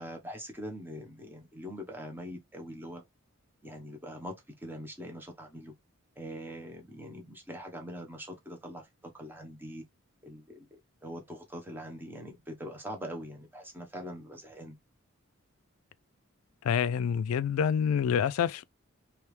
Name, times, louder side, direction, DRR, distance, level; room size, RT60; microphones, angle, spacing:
voice 1, 0.0-3.0 3.6-5.7 6.2-9.8 10.2-14.8, equal, 10° right, 0.8 m, -43 dB
voice 2, 16.6-18.6, left 7 dB, 80° left, 0.3 m, -27 dB
3.4 x 3.0 x 3.1 m
head